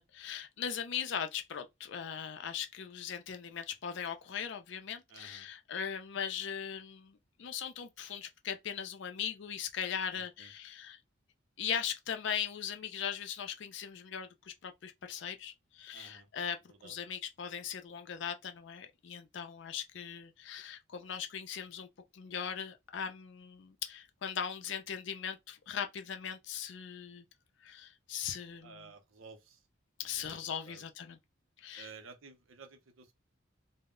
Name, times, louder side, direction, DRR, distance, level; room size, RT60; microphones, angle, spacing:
voice 1, 0.0-11.0 11.6-16.6 16.8-21.9 22.1-27.2 27.6-28.9 30.0-31.2 31.6-31.9, left 8 dB, 60° left, 0.4 m, -39 dB
voice 2, 5.1-5.5 10.1-10.5 15.9-16.3 16.7-17.0 28.6-29.6 30.1-30.8 31.8-33.1, right 5 dB, 80° right, 0.6 m, -53 dB
2.0 x 2.0 x 3.6 m
head